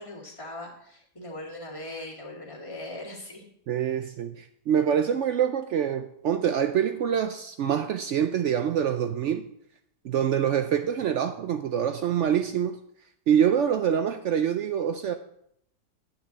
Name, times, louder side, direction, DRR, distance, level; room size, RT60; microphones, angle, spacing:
voice 1, 0.0-3.4, left 1 dB, 20° left, 2.1 m, -40 dB
voice 2, 3.7-9.5 10.0-12.8 13.3-15.1, right 9 dB, 80° right, 0.6 m, -25 dB
9.3 x 8.8 x 4.0 m
omnidirectional pair, 1.8 m